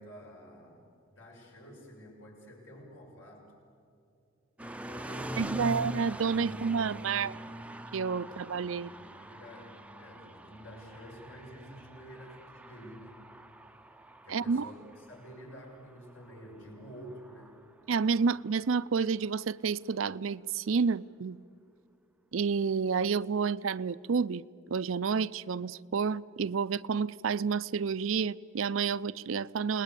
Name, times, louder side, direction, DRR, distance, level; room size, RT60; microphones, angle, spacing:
voice 1, 0.0-3.6 4.6-5.9 6.2-7.6 8.3-8.4 8.7-13.2 14.2-17.6, equal, 75° left, 7.2 m, -50 dB
sound 1, 4.6-18.6, right 1 dB, 5° right, 0.6 m, -44 dB
voice 2, 5.4-7.3 7.9-8.9 14.3-14.7 17.9-21.4 22.3-29.8, right 5 dB, 80° right, 0.5 m, -30 dB
29.0 x 20.0 x 8.4 m
head